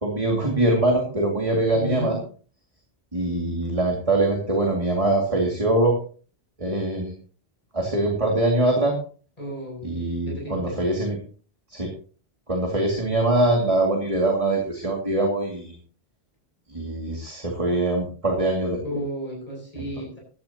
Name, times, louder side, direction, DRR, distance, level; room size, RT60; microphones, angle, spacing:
voice 1, 0.0-2.2 3.1-6.0 6.6-7.1 7.7-9.0 9.8-11.2 11.7-11.9 12.5-15.8 16.7-19.0, right 2 dB, 30° right, 0 dB, 2.5 m, -23 dB
voice 2, 1.7-2.2 9.4-9.8 10.3-10.8 18.8-20.2, equal, 35° left, -1 dB, 6.7 m, -32 dB
17.0 x 12.0 x 2.9 m, 0.41 s
omnidirectional pair, 1.1 m